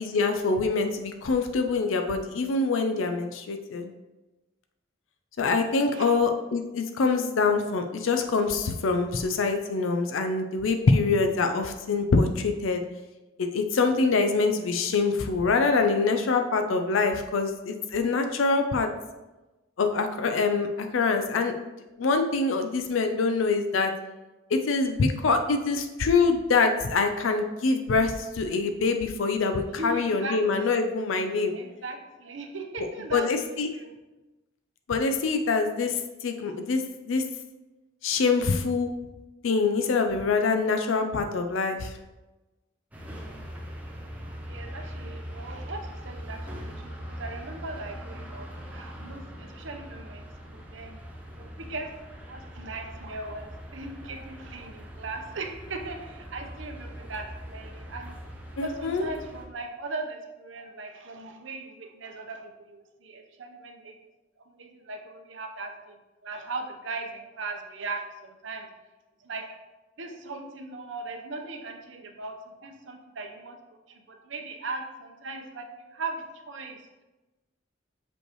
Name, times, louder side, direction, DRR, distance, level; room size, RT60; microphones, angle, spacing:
voice 1, 0.0-3.9 5.4-12.8 13.4-18.9 19.8-21.5 22.0-23.9 24.5-31.5 33.1-33.7 34.9-37.2 38.0-38.9 39.4-41.9 58.6-59.0, left 4 dB, 90° left, 6 dB, 0.5 m, -25 dB
voice 2, 29.7-30.8 31.5-33.9 44.5-51.0 51.4-51.9 52.3-58.1 58.6-63.9 64.4-68.7 69.2-69.5 70.0-73.6 73.9-76.8, right 3 dB, 70° right, 4 dB, 0.8 m, -39 dB
sound 1, 42.9-59.4, equal, 10° right, 0.8 m, -41 dB
6.3 x 5.3 x 3.0 m, 1.1 s
head